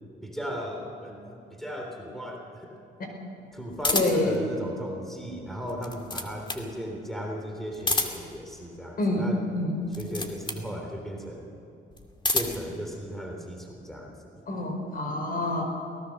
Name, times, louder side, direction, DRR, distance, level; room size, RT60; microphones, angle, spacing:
voice 1, 0.2-2.7 3.5-9.4 9.9-11.5 12.3-14.4, equal, ahead, 0 dB, 3.5 m, -36 dB
sound 1, 3.8-4.4 5.6-6.7 7.7-8.4 9.9-10.7 11.9-12.7, left 2 dB, 25° left, 2.4 m, -29 dB
voice 2, 3.9-4.4 9.0-9.7 14.5-15.6, left 1 dB, 45° left, 3 dB, 5.0 m, -27 dB
23.0 x 18.0 x 6.6 m, 2.8 s
cardioid pair, 90°, 20 cm